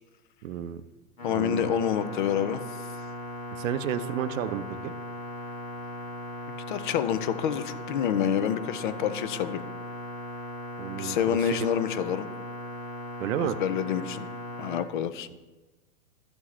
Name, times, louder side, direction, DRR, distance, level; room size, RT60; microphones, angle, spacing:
voice 1, 0.4-0.8 1.3-1.6 3.5-4.9 10.8-11.5 13.2-13.6, right 10 dB, 65° right, 13 dB, 0.6 m, -31 dB
sound 1, 1.2-14.8, equal, 85° left, 2.8 m, -38 dB
voice 2, 1.2-2.6 6.7-9.6 11.0-12.3 13.4-14.3 14.6-15.3, left 9 dB, 35° left, 14 dB, 0.4 m, -28 dB
12.5 x 6.1 x 3.2 m, 1.1 s
hypercardioid pair, 135°, 44 cm